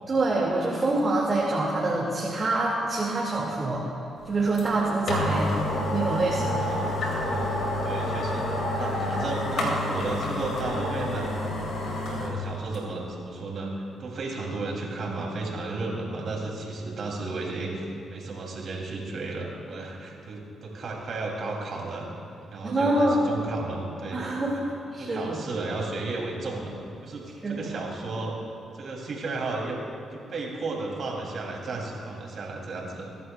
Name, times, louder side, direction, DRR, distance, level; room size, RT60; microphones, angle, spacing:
voice 1, 0.1-3.8 4.2-5.5 5.9-6.7 22.6-23.4 24.1-25.5 27.4-27.7, right 2 dB, 35° right, -4 dB, 2.2 m, -26 dB
sound 1, 4.6-4.7 5.1-12.3 12.7-12.8, left 1 dB, 70° left, 3.0 m, -28 dB
voice 2, 6.5-11.4 12.1-13.7 14.0-22.1 22.5-24.2 24.5-24.6 25.0-26.8 27.0-28.3 28.7-29.8 30.1-33.1, right 3 dB, 60° right, -1 dB, 3.0 m, -34 dB
22.5 x 11.0 x 2.4 m, 2.9 s
supercardioid pair, 65°, 0 cm